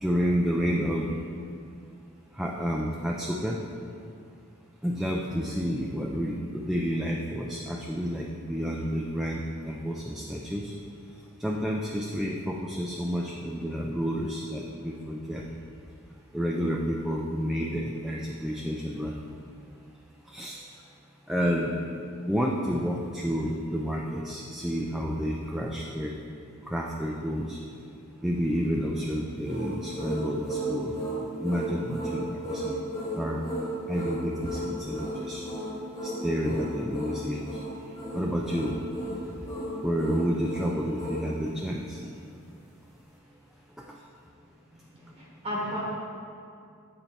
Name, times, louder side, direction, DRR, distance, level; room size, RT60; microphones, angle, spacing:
voice 1, 0.0-1.1 2.4-3.6 4.8-10.7 11.4-15.4 16.3-19.2 20.3-20.6 21.3-21.7 22.3-26.1 26.7-27.6 28.2-30.9 31.4-32.8 33.2-33.4 33.9-35.5 36.0-37.5 38.1-38.7 39.8-42.0, equal, ahead, -2 dB, 0.3 m, -30 dB
sound 1, 29.4-41.3, right 1 dB, 15° left, 1.4 m, -34 dB
voice 2, 44.9-45.8, equal, 25° right, -5 dB, 0.9 m, -34 dB
8.9 x 4.2 x 4.2 m, 2.4 s
head